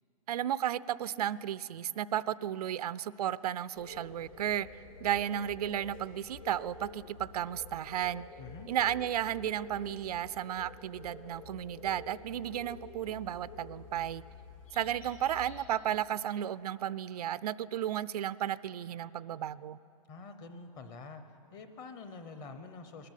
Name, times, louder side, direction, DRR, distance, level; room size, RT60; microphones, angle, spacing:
voice 1, 0.3-8.3 8.7-14.2 14.7-19.8, right 11 dB, 90° right, 17 dB, 0.5 m, -34 dB
sound 1, 3.7-15.6, left 3 dB, 65° left, 5.5 m, -49 dB
voice 2, 8.4-8.7 20.1-23.1, left 4 dB, 20° left, 9 dB, 0.8 m, -47 dB
19.5 x 13.5 x 10.0 m, 2.7 s
hypercardioid pair, 175°, 19 cm